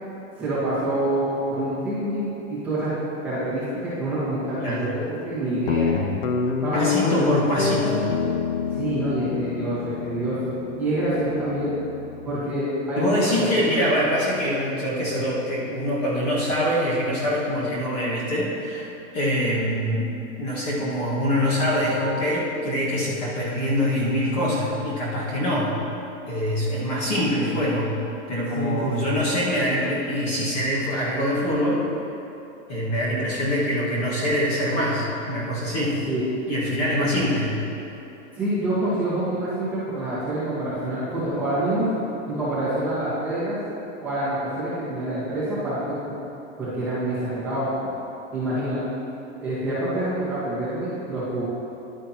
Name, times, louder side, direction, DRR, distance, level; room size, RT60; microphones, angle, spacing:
voice 1, 0.4-2.9 3.2-5.9 6.6-7.3 8.8-10.5 10.8-11.7 12.2-13.1 13.4-13.8 28.5-28.9 36.1-36.3 36.9-37.2 38.3-41.9 42.3-43.6 44.0-46.1 46.6-47.7 48.3-48.8 49.4-51.5, right 1 dB, 5° right, -13 dB, 1.5 m, -26 dB
Guitar, 5.7-12.4, left 6 dB, 65° left, 0.7 m, -27 dB
voice 2, 6.7-8.1 13.0-18.9 19.1-20.1 20.4-25.7 26.3-27.9 28.3-31.8 32.7-36.0 36.5-37.5, equal, 30° left, -6 dB, 1.8 m, -24 dB
11.0 x 9.8 x 3.0 m, 3.0 s
supercardioid pair, 175°, 39 cm